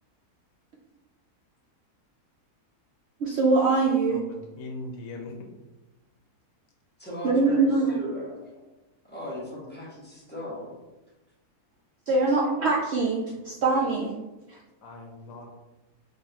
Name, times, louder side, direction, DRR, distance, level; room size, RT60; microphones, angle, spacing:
voice 1, 3.2-4.2 7.2-8.0 12.1-14.1 14.5-14.6, right 3 dB, 80° right, -2 dB, 0.6 m, -23 dB
voice 2, 4.1-5.3 14.8-15.5, left 2 dB, 65° left, 1 dB, 1.1 m, -40 dB
voice 3, 7.0-8.4 9.0-10.7 12.3-12.4, left 1 dB, 10° left, -7 dB, 0.9 m, -37 dB
3.7 x 3.1 x 2.8 m, 1.1 s
omnidirectional pair, 1.7 m